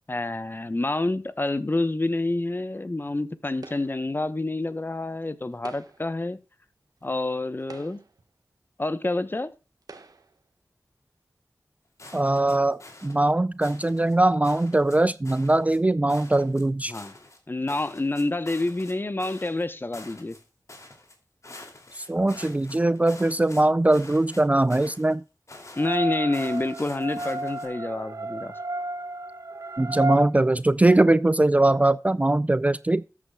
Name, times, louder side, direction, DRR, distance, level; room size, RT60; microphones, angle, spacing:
voice 1, 0.1-6.4 7.0-8.0 8.8-9.5 16.9-17.1 17.5-20.4 25.8-28.5, left 2 dB, 35° left, 0.9 m, -28 dB
sound 1, 3.6-4.1 5.5-6.2 7.0-7.1 7.6-8.3 9.1-9.2 9.8-10.4, right 4 dB, 90° right, 1.3 m, -47 dB
sound 2, 12.0-13.2 13.6-14.1 14.4-15.0 15.2-15.8 16.1-17.4 17.7-18.9 19.2-19.6 19.9-20.4 20.7-21.1 21.4-23.6 23.9-25.1 25.5-26.0 26.3-27.7, left 2 dB, 55° left, 2.7 m, -46 dB
voice 2, 12.1-16.9 22.0-25.2 29.8-33.0, right 2 dB, 25° right, 0.4 m, -21 dB
sound 3, 25.8-30.3, right 2 dB, 60° right, 0.9 m, -32 dB
13.5 x 8.5 x 2.3 m
wide cardioid pair, 60°, 6 cm